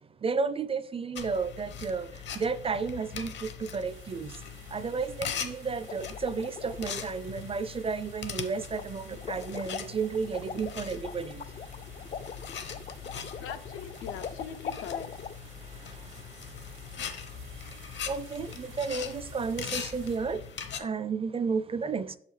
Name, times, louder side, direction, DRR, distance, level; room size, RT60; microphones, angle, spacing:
voice 1, 0.2-2.1 2.4-4.3 4.7-11.4 18.1-20.4 20.8-22.2, right 5 dB, 30° right, 0.4 m, -32 dB
sound 1, 1.1-20.8, left 7 dB, 65° left, 1.0 m, -41 dB
sound 2, 3.8-20.2, right 10 dB, 90° right, 0.8 m, -56 dB
sound 3, 5.9-7.0 8.7-8.9 9.1-15.4, left 7 dB, 35° left, 0.4 m, -41 dB
voice 2, 13.1-15.1 20.7-20.9, left 7 dB, 85° left, 0.7 m, -42 dB
6.7 x 5.6 x 3.2 m
cardioid pair, 90°, 20 cm